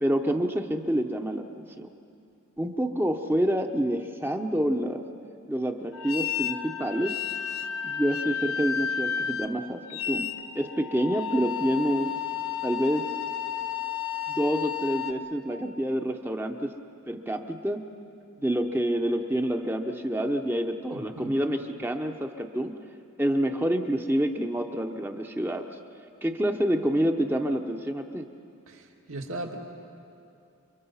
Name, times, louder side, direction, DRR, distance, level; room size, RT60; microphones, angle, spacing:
voice 1, 0.0-1.9 2.6-5.0 5.5-7.1 7.8-10.3 10.5-12.1 12.6-13.0 14.3-16.7 17.1-17.8 18.4-22.7 23.2-25.8 26.2-28.3, equal, 10° right, 5 dB, 0.8 m, -27 dB
sound 1, 5.9-15.1, left 8 dB, 70° left, 1.1 m, -32 dB
voice 2, 20.9-21.3 28.7-29.6, right 2 dB, 70° right, 1 dB, 2.3 m, -38 dB
29.0 x 23.5 x 5.6 m, 2.6 s
head